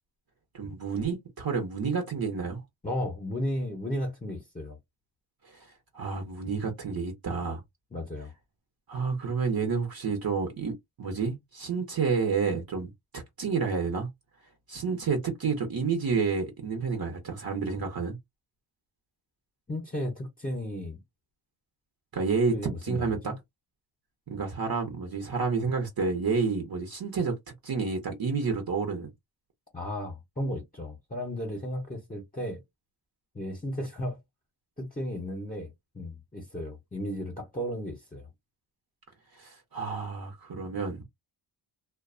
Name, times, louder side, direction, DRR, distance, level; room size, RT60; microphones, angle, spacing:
voice 1, 0.5-2.6 5.4-7.6 8.9-14.1 14.7-18.2 22.1-22.6 22.8-23.3 24.3-27.4 27.6-29.1 39.4-41.0, right 5 dB, 50° right, 0.9 m, -30 dB
voice 2, 2.8-4.8 7.9-8.3 19.7-21.0 22.5-23.4 29.7-32.6 33.3-34.2 34.8-38.3, left 1 dB, 20° left, 0.8 m, -34 dB
2.5 x 2.2 x 2.5 m
wide cardioid pair, 90°, 46 cm